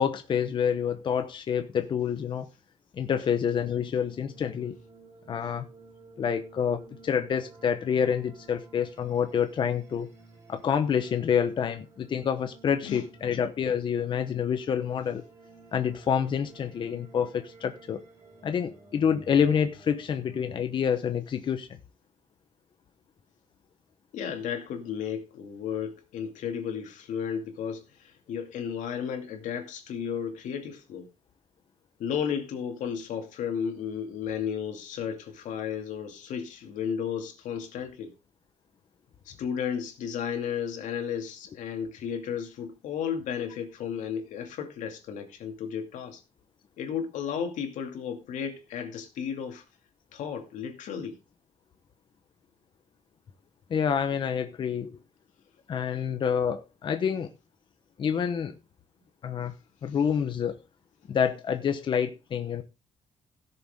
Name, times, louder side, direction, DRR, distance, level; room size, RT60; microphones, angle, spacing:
voice 1, 0.0-2.5 2.9-4.8 5.3-5.7 6.2-10.1 10.5-15.2 15.7-18.0 18.4-21.7 53.7-55.0 55.7-57.3 58.0-58.5 59.2-59.5 59.8-60.6 61.1-62.6, left 7 dB, 40° left, 1.0 m, -27 dB
sound 1, 3.6-20.4, right 3 dB, 25° right, 3.4 m, -53 dB
voice 2, 24.1-31.1 32.0-38.1 39.3-46.2 46.8-49.6 50.1-51.2, left 7 dB, 85° left, 2.4 m, -33 dB
17.0 x 6.9 x 3.6 m
cardioid pair, 175°, 13 cm